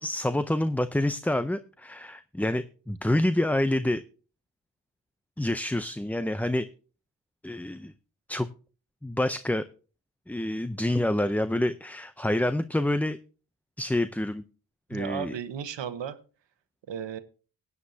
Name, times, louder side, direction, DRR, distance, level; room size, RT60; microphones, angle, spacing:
voice 1, 0.0-4.0 5.4-6.7 7.4-7.9 8.3-8.5 9.0-9.6 10.3-13.2 13.8-14.4 14.9-15.3, left 1 dB, 5° left, 11 dB, 0.5 m, -27 dB
voice 2, 14.9-16.2 16.9-17.2, right 8 dB, 85° right, 12 dB, 1.1 m, -34 dB
16.5 x 9.6 x 2.7 m, 0.36 s
cardioid pair, 70°, 43 cm